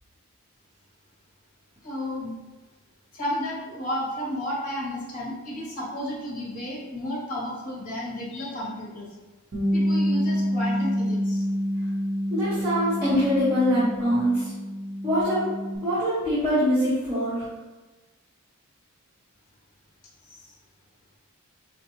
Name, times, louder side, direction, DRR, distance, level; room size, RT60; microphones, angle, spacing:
voice 1, 1.8-2.3 3.1-9.1 9.7-11.4 20.2-20.6, left 1 dB, 40° left, -5 dB, 1.2 m, -32 dB
Bass guitar, 9.5-15.8, equal, 50° right, 0.9 m, -27 dB
voice 2, 12.3-14.5 15.0-15.5 15.8-17.5, equal, 15° right, -15 dB, 1.2 m, -23 dB
4.8 x 2.6 x 3.0 m, 1.2 s
head